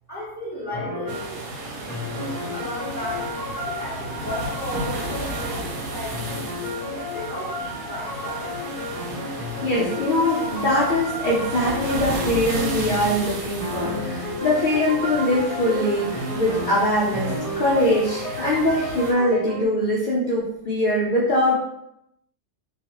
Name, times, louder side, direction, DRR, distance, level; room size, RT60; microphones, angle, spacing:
voice 1, 0.1-3.3 3.6-6.5 6.9-8.5, left 1 dB, 15° right, -9 dB, 0.9 m, -35 dB
sound 1, 0.7-1.3 1.9-13.3 13.6-19.7, left 1 dB, 40° left, 0.7 m, -32 dB
sound 2, 1.1-19.1, right 2 dB, 85° right, 1.1 m, -34 dB
voice 2, 9.2-21.5, left 1 dB, 80° left, -6 dB, 0.4 m, -22 dB
2.3 x 2.3 x 2.9 m, 0.80 s
omnidirectional pair, 1.5 m